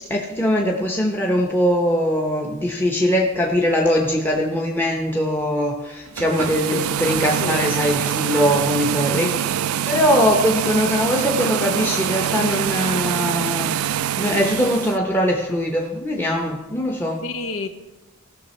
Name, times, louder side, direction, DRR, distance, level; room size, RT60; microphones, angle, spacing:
voice 1, 0.1-9.6 9.8-17.3, equal, 10° left, 0.8 m, -21 dB
sound 1, 6.1-15.0, right 10 dB, 75° right, 0.3 m, -24 dB
voice 2, 6.7-7.0 7.4-7.7 9.1-9.4 17.2-17.7, left 4 dB, 70° left, 0.9 m, -30 dB
16.5 x 6.6 x 4.3 m
head